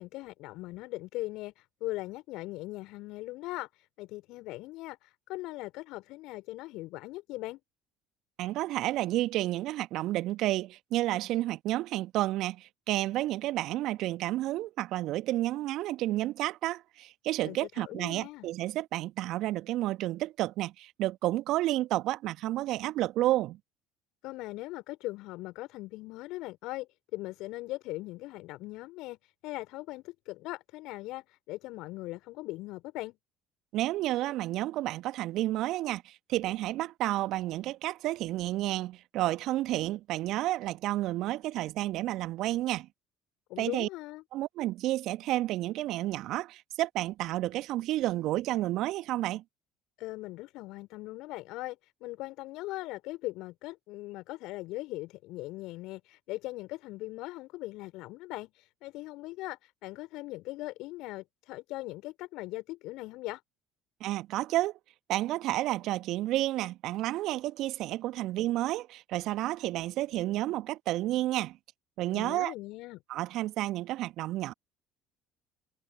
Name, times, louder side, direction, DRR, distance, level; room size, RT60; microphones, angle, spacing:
voice 1, 0.0-7.6 17.4-18.5 24.2-33.2 43.5-44.2 50.0-63.4 72.1-73.0, left 19 dB, 60° left, 4.8 m, -40 dB
voice 2, 8.4-23.6 33.7-42.9 43.6-43.9 44.3-49.4 64.0-64.8 65.1-71.6 72.0-72.5 73.1-74.5, right 15 dB, 60° right, 1.6 m, -31 dB
figure-of-eight pair, 60°, 0 cm